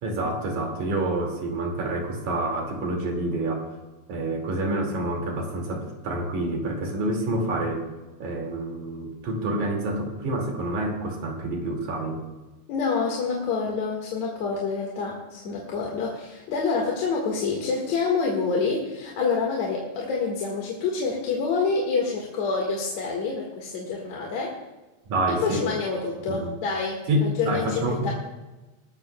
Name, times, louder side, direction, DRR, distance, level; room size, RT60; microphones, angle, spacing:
voice 1, 0.0-3.7 4.1-7.8 8.2-12.2 25.1-25.7 26.3-26.5 27.1-27.2 27.5-28.1, right 2 dB, 70° right, 2 dB, 3.8 m, -28 dB
voice 2, 12.7-24.5 25.3-28.1, left 4 dB, 65° left, -2 dB, 3.1 m, -27 dB
21.5 x 13.0 x 2.3 m, 1.1 s
omnidirectional pair, 3.5 m